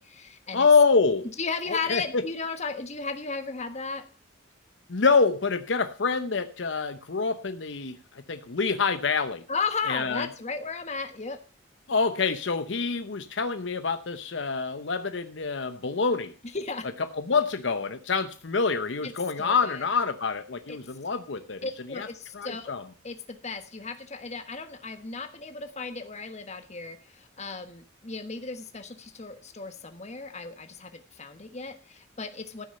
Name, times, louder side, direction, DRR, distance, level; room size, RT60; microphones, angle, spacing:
voice 1, 0.0-0.7 1.4-4.1 9.5-11.4 16.5-16.9 19.0-19.1 19.4-19.9 20.7-20.8 21.6-22.7 23.0-32.7, left 4 dB, 35° left, 8 dB, 1.3 m, -35 dB
voice 2, 0.5-1.3 1.7-2.2 4.9-9.4 9.9-10.3 11.9-16.3 17.1-21.6 21.9-22.1 22.3-22.8, left 4 dB, 70° left, 10 dB, 0.8 m, -26 dB
14.0 x 6.4 x 6.6 m, 0.36 s
head